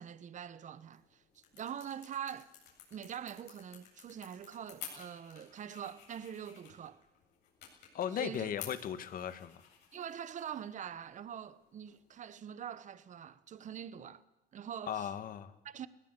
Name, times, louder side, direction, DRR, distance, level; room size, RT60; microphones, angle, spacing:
voice 1, 0.0-2.5 2.9-7.0 8.1-8.5 9.9-14.2 14.5-15.1 15.6-15.9, right 9 dB, 45° right, 1.2 m, -44 dB
sound 1, 0.7-12.3, left 9 dB, 85° left, 7.8 m, -54 dB
voice 2, 7.9-9.6 14.9-15.5, left 9 dB, 55° left, 1.9 m, -37 dB
21.0 x 19.0 x 8.3 m
cardioid pair, 110°, 17 cm